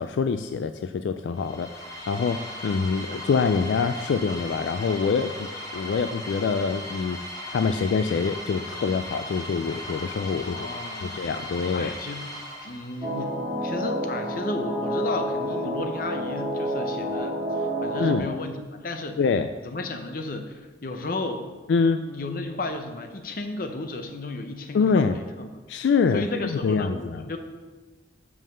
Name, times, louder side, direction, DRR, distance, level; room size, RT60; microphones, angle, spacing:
voice 1, 0.0-7.2 7.5-10.6 11.0-11.9 18.0-18.3 19.2-19.5 21.7-22.0 24.7-25.2 25.7-27.2, left 5 dB, 80° left, 9 dB, 0.3 m, -25 dB
sound 1, 1.3-13.2, left 1 dB, 20° left, 1.0 m, -38 dB
voice 2, 10.4-11.2 11.7-12.2 12.6-19.2 19.6-21.5 22.0-25.5 25.8-25.9 26.1-27.4, left 2 dB, 50° left, 6 dB, 0.7 m, -34 dB
sound 2, 13.0-18.2, equal, 30° right, 1.9 m, -29 dB
5.5 x 5.4 x 6.4 m, 1.3 s
head